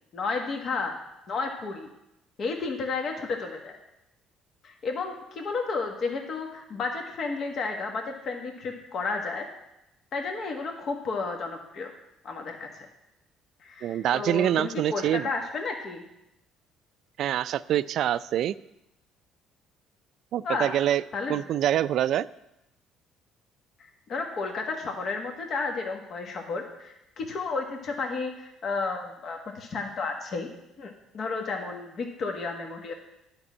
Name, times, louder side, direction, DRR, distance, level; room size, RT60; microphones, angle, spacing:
voice 1, 0.1-0.9 1.3-1.9 2.4-3.8 4.6-9.5 10.1-11.9 12.2-12.9 13.6-16.0 20.4-20.8 21.1-21.4 24.1-30.5 30.8-32.9, left 4 dB, 55° left, 3 dB, 1.4 m, -32 dB
voice 2, 13.8-15.3 17.2-18.5 20.3-21.0 21.3-22.3, right 11 dB, 65° right, 16 dB, 0.3 m, -25 dB
9.8 x 5.3 x 7.3 m, 0.88 s
supercardioid pair, 80°, 0 cm